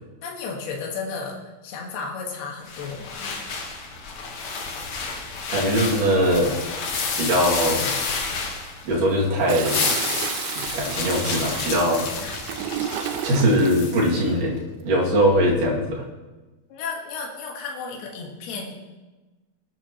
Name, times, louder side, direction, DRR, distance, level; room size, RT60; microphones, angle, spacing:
voice 1, 0.2-3.4 12.2-12.4 16.7-18.7, left 4 dB, 75° left, -1 dB, 3.6 m, -33 dB
sound 1, 2.7-9.1 9.4-14.1, left 4 dB, 60° left, 2.1 m, -30 dB
voice 2, 5.5-6.5 7.2-7.9 8.9-10.0 10.5-12.0 13.2-16.0, equal, 55° right, -4 dB, 3.7 m, -21 dB
Toilet flush, 9.5-13.8 15.2-15.7, right 9 dB, 80° right, 1.8 m, -32 dB
19.5 x 11.0 x 3.0 m, 1.2 s
omnidirectional pair, 4.6 m